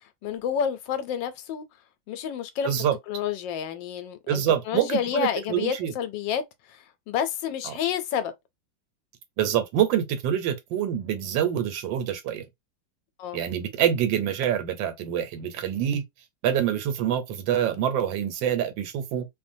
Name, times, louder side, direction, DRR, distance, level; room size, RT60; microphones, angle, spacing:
voice 1, 0.2-1.7 2.1-2.7 3.1-6.4 6.7-8.3 13.2-13.4, left 8 dB, 85° left, 1.3 m, -29 dB
voice 2, 2.6-2.9 4.3-5.9 7.6-7.8 9.4-12.4 13.3-16.0 16.4-19.3, right 10 dB, 85° right, 1.4 m, -26 dB
3.1 x 2.2 x 2.6 m
omnidirectional pair, 2.0 m